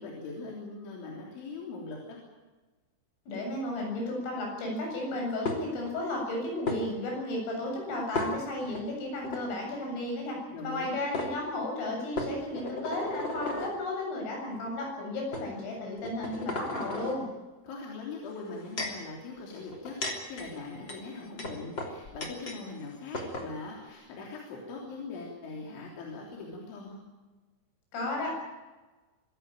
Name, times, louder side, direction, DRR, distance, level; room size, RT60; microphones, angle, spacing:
voice 1, 0.0-2.2 10.5-11.0 17.6-27.0, left 3 dB, 70° left, -1 dB, 5.7 m, -41 dB
voice 2, 3.3-17.3 27.9-28.4, left 1 dB, 85° left, 0 dB, 10.5 m, -34 dB
sound 1, 5.5-5.9 6.7-6.8 8.1-8.8 9.2-9.4 10.7-10.8 11.1-11.3 12.2-13.8 14.5-14.7 15.3-15.5 16.0-17.2 18.3-19.1 19.7-22.6 22.9-23.0 23.1-23.5, left 2 dB, 30° left, 3.1 m, -35 dB
24.5 x 16.5 x 9.1 m, 1.2 s
omnidirectional pair, 5.6 m